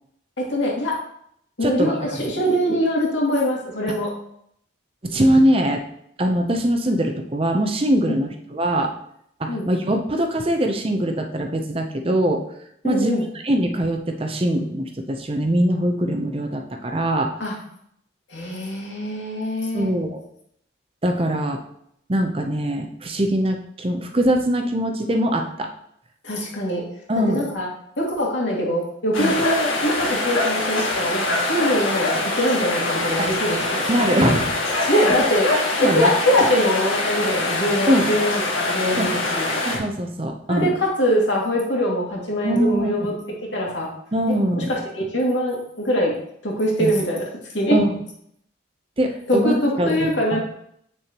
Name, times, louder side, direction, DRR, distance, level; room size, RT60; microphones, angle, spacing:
voice 1, 0.4-0.9 1.6-4.1 8.1-8.2 9.5-9.7 12.8-13.3 17.4-17.5 18.3-19.9 26.2-26.8 27.3-27.7 28.0-33.9 34.9-35.5 35.8-39.5 40.5-43.1 43.5-43.9 44.6-46.1 46.4-47.2 47.5-47.8 49.3-50.4, equal, 65° left, -3 dB, 2.3 m, -23 dB
voice 2, 1.6-2.4 3.9-4.0 5.0-5.8 6.2-8.9 9.4-12.4 12.8-17.3 19.7-20.2 21.0-21.6 22.1-25.7 27.1-27.4 29.2-29.3 33.2-33.3 33.9-35.2 35.5-36.1 37.9-38.1 39.0-39.1 39.6-40.7 42.4-42.9 44.1-44.7 46.8-46.9 47.7-48.0 49.0-50.1, right 1 dB, 30° right, 4 dB, 0.6 m, -22 dB
sound 1, 29.1-39.8, left 2 dB, 85° left, 1.8 m, -24 dB
7.7 x 6.5 x 3.0 m, 0.71 s
head